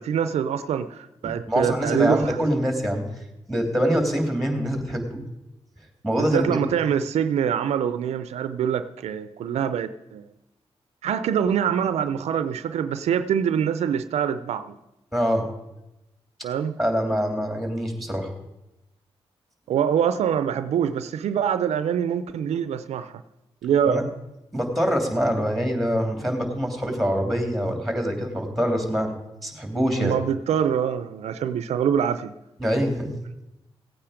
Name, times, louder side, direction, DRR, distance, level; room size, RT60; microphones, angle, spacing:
voice 1, 0.0-2.4 6.2-10.3 11.0-14.8 16.4-16.8 19.7-23.2 23.6-24.1 30.0-32.3, right 8 dB, 90° right, 13 dB, 0.5 m, -24 dB
voice 2, 1.2-3.1 3.5-5.2 6.0-6.6 15.1-15.5 16.8-18.3 23.8-24.0 24.5-29.1 29.4-30.2 32.6-33.1, equal, ahead, 5 dB, 2.8 m, -24 dB
16.0 x 8.8 x 5.0 m, 0.94 s
cardioid pair, 65°, 11 cm